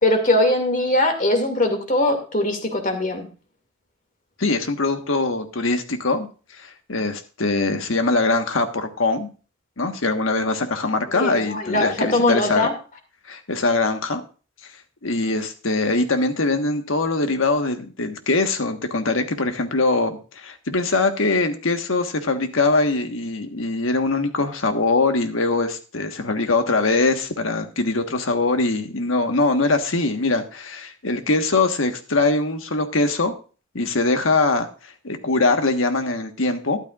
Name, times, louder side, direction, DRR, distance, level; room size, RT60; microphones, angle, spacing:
voice 1, 0.0-3.3 11.1-12.7, left 1 dB, 40° left, 5 dB, 2.3 m, -21 dB
voice 2, 4.4-6.3 6.5-9.3 9.8-12.7 13.3-14.2 15.0-33.3 33.7-34.7 35.0-36.8, left 3 dB, 80° left, 6 dB, 1.4 m, -22 dB
13.0 x 11.5 x 2.5 m, 0.36 s
head